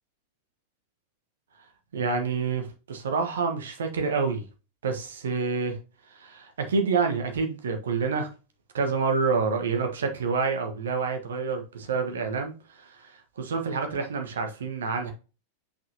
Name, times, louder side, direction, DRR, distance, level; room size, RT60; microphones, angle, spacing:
voice 1, 1.9-4.4 4.8-5.8 6.1-8.3 8.7-15.1, right 4 dB, 65° right, 1.5 m, -28 dB
6.0 x 5.8 x 2.9 m
figure-of-eight pair, 90°, 0 cm